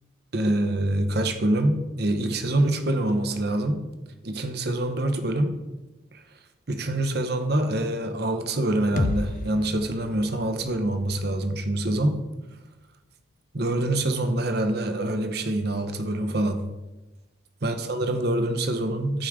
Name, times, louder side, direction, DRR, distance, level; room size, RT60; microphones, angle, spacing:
voice 1, 0.3-3.8 4.2-5.6 6.1-6.2 6.7-12.2 13.5-16.6 17.6-19.3, right 1 dB, 55° right, 7 dB, 0.9 m, -25 dB
sound 1, 9.0-12.8, left 2 dB, 40° left, 0.4 m, -34 dB
14.0 x 4.9 x 3.6 m, 1.1 s
head